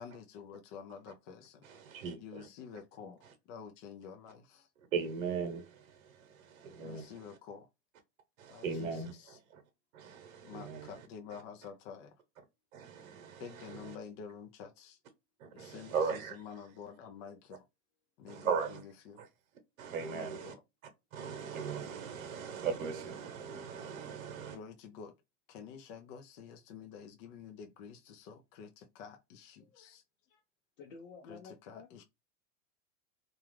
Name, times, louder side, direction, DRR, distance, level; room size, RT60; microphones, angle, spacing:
voice 1, 0.0-1.7 2.2-4.7 6.8-7.7 8.5-9.4 10.4-12.2 13.4-15.0 15.5-17.7 18.2-19.2 20.1-20.6 24.5-25.1 25.5-30.0 31.3-32.0, left 6 dB, 40° left, 0.4 m, -49 dB
voice 2, 1.6-2.5 4.9-7.2 8.4-9.6 9.9-10.9 12.7-14.0 15.4-16.4 18.3-18.8 19.2-19.3 19.8-20.5 21.1-24.6, right 6 dB, 85° right, 0.9 m, -38 dB
voice 3, 30.8-31.9, left 4 dB, 70° left, 0.8 m, -52 dB
2.4 x 2.3 x 3.1 m
supercardioid pair, 130°, 41 cm